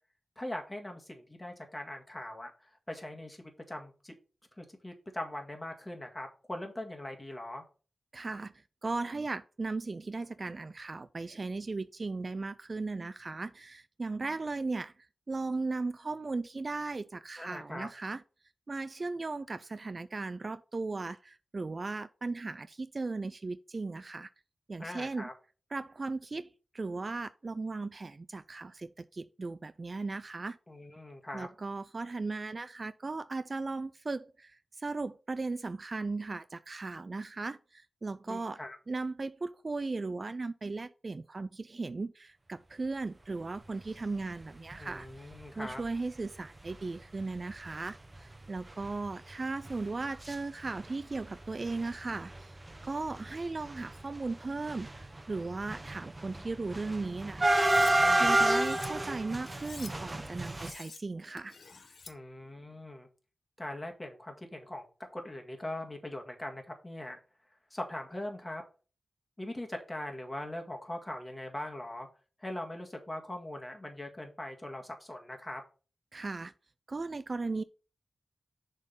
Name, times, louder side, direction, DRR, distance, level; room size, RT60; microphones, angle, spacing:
voice 1, 0.4-3.4 3.7-4.1 4.6-7.6 17.4-17.9 24.8-25.3 30.7-31.5 38.3-38.8 44.8-45.8 58.0-58.6 62.1-63.1 63.6-64.8 65.1-67.2 67.7-68.6 69.4-72.1 72.4-75.6, left 1 dB, 20° left, 1.7 m, -41 dB
voice 2, 8.1-14.9 15.3-18.2 18.7-24.3 24.7-25.3 25.7-30.6 31.3-38.6 38.9-45.3 45.6-52.5 52.8-57.9 58.2-61.5 76.1-76.5 76.9-77.6, right 3 dB, 45° right, 0.3 m, -37 dB
sound 1, 44.7-44.9 45.4-45.5 45.7-45.9 46.7-46.8 47.2-47.4 47.6-47.8 48.1-50.3 50.6-51.3 51.6-60.7, right 1 dB, 25° right, 0.9 m, -30 dB
Cutlery silverware, 57.5-57.9 58.4-58.9 59.5-59.9 60.5-61.0 61.4-62.1, left 4 dB, 65° left, 1.0 m, -48 dB
6.5 x 3.7 x 5.6 m
cardioid pair, 65°, 0 cm